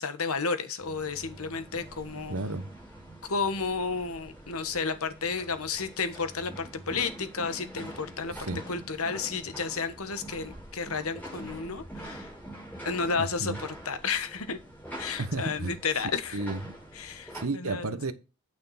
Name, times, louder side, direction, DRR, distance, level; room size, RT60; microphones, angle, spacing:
voice 1, 0.0-2.3 3.2-8.3 8.7-12.3 12.8-14.6 15.0-16.4 16.9-18.0, left 5 dB, 80° left, 1.3 m, -32 dB
sound 1, 0.8-17.4, right 1 dB, 10° left, 5.6 m, -45 dB
voice 2, 2.3-2.7 8.4-8.6 13.1-13.6 15.2-15.7 16.3-16.8 17.3-18.1, right 2 dB, 75° right, 1.1 m, -32 dB
9.2 x 6.2 x 4.2 m
head